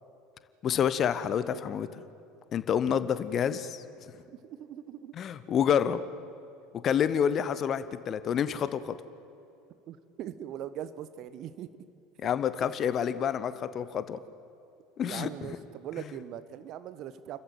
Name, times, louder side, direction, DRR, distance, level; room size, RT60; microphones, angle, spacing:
voice 1, 0.6-2.0 2.5-3.8 5.2-6.0 6.8-8.9 12.2-14.2 15.0-15.6, left 8 dB, 35° left, 14 dB, 1.1 m, -28 dB
voice 2, 4.1-5.1 9.9-11.7 15.0-17.4, right 10 dB, 45° right, 13 dB, 1.1 m, -41 dB
29.0 x 14.5 x 9.4 m, 2.7 s
figure-of-eight pair, 70°, 0 cm